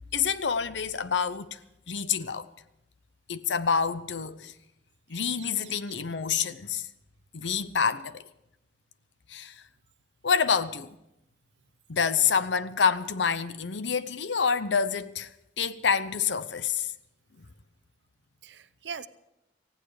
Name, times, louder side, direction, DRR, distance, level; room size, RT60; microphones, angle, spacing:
voice 1, 0.1-1.6 1.9-2.5 3.3-4.5 5.1-6.9 7.3-8.2 9.3-9.5 10.2-11.0 11.9-15.3 15.6-16.9 17.4-17.5, left 6 dB, 85° left, 0.8 m, -27 dB
voice 2, 5.1-6.0 12.3-12.5 18.4-19.1, right 6 dB, 75° right, 0.7 m, -43 dB
19.0 x 15.5 x 4.9 m
head